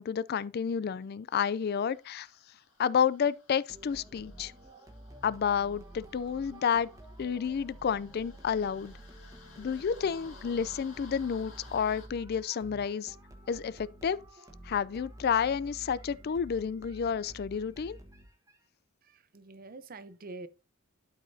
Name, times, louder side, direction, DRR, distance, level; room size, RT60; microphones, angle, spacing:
voice 1, 0.0-2.3 2.8-4.5 5.2-6.9 7.2-8.9 9.6-13.1 13.5-14.2 14.6-18.0, left 7 dB, 50° left, 0.4 m, -30 dB
sound 1, 1.4-12.1, left 3 dB, 70° left, 2.6 m, -57 dB
sound 2, 3.7-18.6, right 1 dB, 15° right, 1.2 m, -50 dB
voice 2, 19.0-20.5, right 3 dB, 45° right, 0.6 m, -46 dB
12.0 x 4.8 x 2.7 m
head